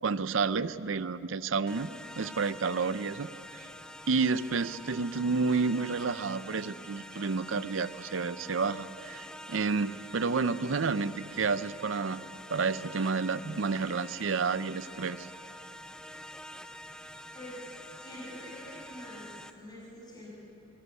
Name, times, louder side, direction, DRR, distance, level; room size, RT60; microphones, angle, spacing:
voice 1, 0.0-3.7 4.1-12.2 12.5-15.3, right 4 dB, 70° right, 14 dB, 0.6 m, -30 dB
sound 1, 1.7-19.5, equal, 5° left, 0.6 m, -47 dB
voice 2, 17.3-17.7 18.0-20.3, equal, 20° left, -6 dB, 6.7 m, -46 dB
23.5 x 16.5 x 8.3 m, 2.9 s
head